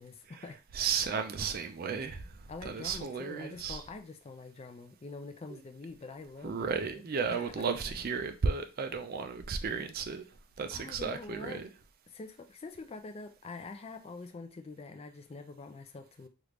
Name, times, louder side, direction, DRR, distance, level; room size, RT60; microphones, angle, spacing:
voice 1, 0.0-0.6 2.5-7.0 10.7-11.6 12.1-16.3, left 3 dB, 25° left, 0.3 m, -45 dB
voice 2, 0.7-2.3 2.6-3.8 6.4-10.2 10.6-11.7, right 5 dB, 40° right, 0.4 m, -34 dB
3.1 x 2.5 x 3.3 m
head